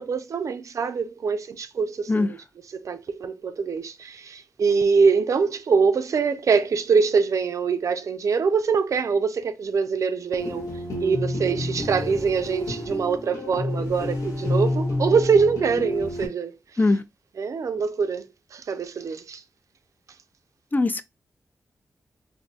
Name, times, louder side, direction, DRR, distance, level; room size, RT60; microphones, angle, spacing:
voice 1, 0.0-10.6 11.0-16.9 17.4-19.4, right 5 dB, 65° right, 0.4 m, -24 dB
voice 2, 2.1-2.3 16.8-17.0 20.7-21.0, left 2 dB, 30° left, 0.4 m, -20 dB
sound 1, 10.4-16.3, left 1 dB, 85° left, 1.1 m, -29 dB
2.5 x 2.3 x 3.9 m
cardioid pair, 60°, 6 cm